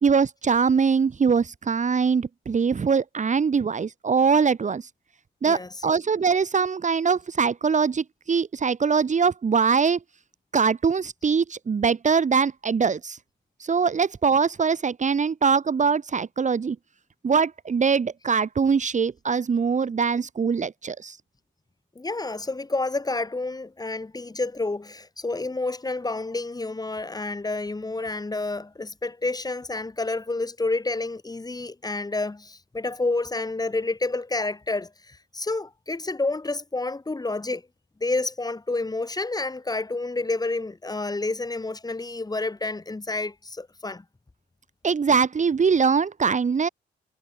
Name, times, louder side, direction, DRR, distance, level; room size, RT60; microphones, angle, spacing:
voice 1, 0.0-4.9 5.4-10.0 10.5-13.2 13.6-16.8 17.2-21.2 44.8-46.7, right 5 dB, 35° right, 2.3 m, -22 dB
voice 2, 22.0-37.6 38.0-44.0, left 2 dB, 20° left, 7.3 m, -29 dB
cardioid pair, 90°, 20 cm